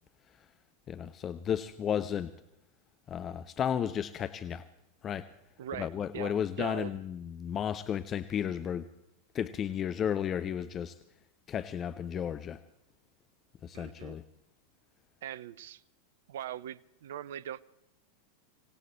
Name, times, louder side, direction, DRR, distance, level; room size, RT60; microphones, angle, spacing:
voice 1, 0.9-2.3 3.1-4.6 5.0-5.3 5.8-8.9 9.3-11.0 11.5-12.6 13.6-14.2, left 9 dB, 25° left, 0.6 m, -33 dB
voice 2, 5.6-7.0 13.7-14.2 15.2-15.8 16.3-17.6, right 11 dB, 55° right, 0.6 m, -41 dB
26.0 x 18.0 x 3.0 m
figure-of-eight pair, 90°, 0 cm